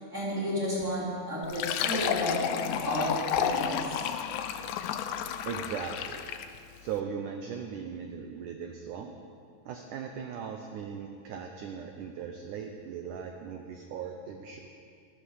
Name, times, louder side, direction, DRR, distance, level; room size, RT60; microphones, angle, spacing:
voice 1, 0.0-4.1, equal, 20° right, -6 dB, 3.2 m, -32 dB
Fill (with liquid), 1.4-6.6, left 9 dB, 85° left, 2.8 m, -31 dB
voice 2, 5.5-6.3 6.8-9.1 9.7-14.7, right 7 dB, 85° right, 4 dB, 1.8 m, -38 dB
13.5 x 12.0 x 6.6 m, 2.4 s
omnidirectional pair, 4.7 m